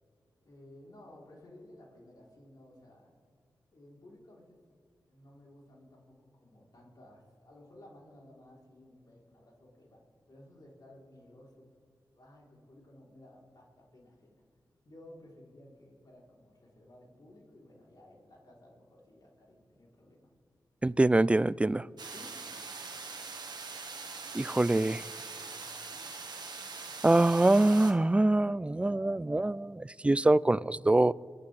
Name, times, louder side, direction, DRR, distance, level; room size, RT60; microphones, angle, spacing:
voice 1, 0.4-3.1 3.7-4.8 5.1-11.7 12.1-14.4 14.8-20.3 22.1-22.4, left 1 dB, 60° left, -3 dB, 3.4 m, -56 dB
voice 2, 20.8-21.9 24.3-25.1 27.0-31.1, right 2 dB, 15° right, 20 dB, 0.3 m, -24 dB
sound 1, 22.0-27.9, right 4 dB, 65° right, 1.4 m, -42 dB
23.0 x 11.0 x 3.3 m, 2.1 s
cardioid pair, 45°, 8 cm